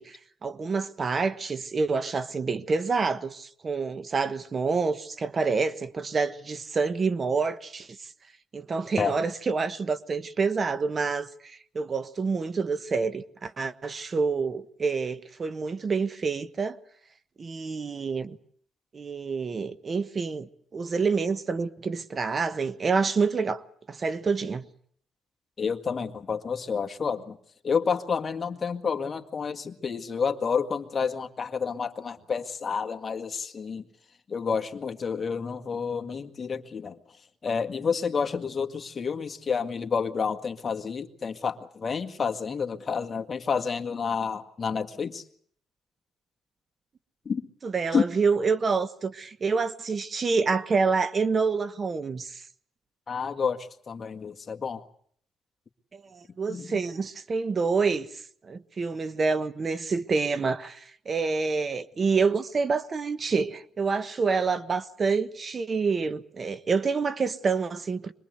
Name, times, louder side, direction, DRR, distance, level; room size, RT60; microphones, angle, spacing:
voice 1, 0.0-7.9 8.5-16.8 17.4-18.4 18.9-23.6 23.9-24.6 47.6-52.4 55.9-68.1, right 4 dB, 40° right, 1.2 m, -27 dB
voice 2, 25.6-27.4 27.6-33.8 34.3-37.0 37.4-45.2 47.3-47.5 47.9-48.0 53.1-54.8 56.5-56.8, left 6 dB, 40° left, 1.9 m, -29 dB
25.5 x 21.5 x 8.0 m
cardioid pair, 90°, 0 cm